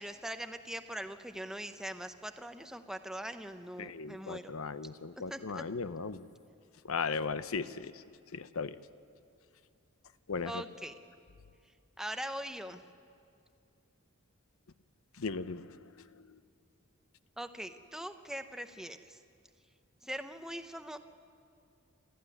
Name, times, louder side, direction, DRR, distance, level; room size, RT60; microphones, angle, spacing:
voice 1, 0.0-4.5 5.3-5.6 10.4-10.9 12.0-12.8 17.4-19.2 20.0-21.0, equal, 5° right, 7 dB, 0.8 m, -41 dB
voice 2, 3.8-6.3 6.9-7.9 8.3-8.8 10.3-10.6 15.2-15.7, left 5 dB, 75° left, 13 dB, 0.8 m, -36 dB
27.5 x 14.0 x 9.9 m, 2.4 s
head